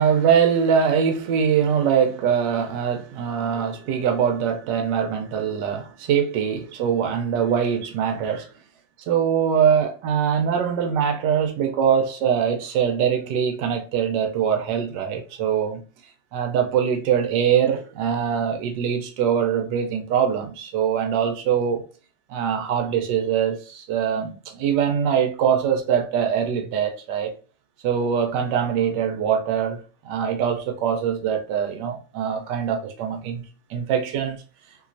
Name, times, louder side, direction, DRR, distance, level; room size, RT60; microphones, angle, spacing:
voice 1, 0.0-8.5 9.1-15.8 16.3-21.8 22.3-27.3 27.8-33.4 33.7-34.4, right 8 dB, 85° right, 1.3 m, -23 dB
3.0 x 3.0 x 2.5 m
omnidirectional pair, 1.9 m